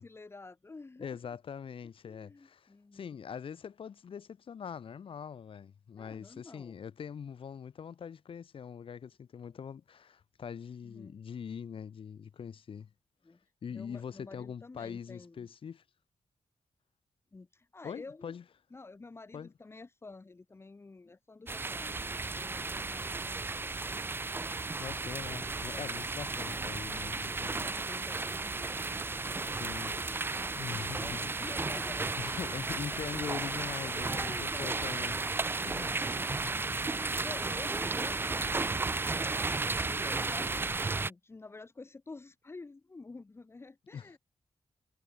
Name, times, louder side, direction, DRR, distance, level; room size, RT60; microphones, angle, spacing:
voice 1, 0.0-1.2 2.0-3.2 6.0-6.8 10.8-11.2 13.2-13.4 13.7-15.5 17.3-18.3 18.7-24.0 25.7-26.0 27.3-33.0 33.6-34.8 35.6-38.9 39.6-40.7 41.0-44.2, left 3 dB, 25° left, 1.7 m, -50 dB
voice 2, 1.0-12.9 13.6-15.8 17.8-18.4 19.3-19.5 24.8-27.7 29.5-29.9 30.5-31.3 32.2-34.3 34.6-35.1 35.6-36.4 36.7-37.0 43.9-44.2, left 7 dB, 55° left, 1.2 m, -42 dB
sound 1, 21.5-41.1, right 3 dB, 20° right, 0.5 m, -34 dB
wide cardioid pair, 160°, 11 cm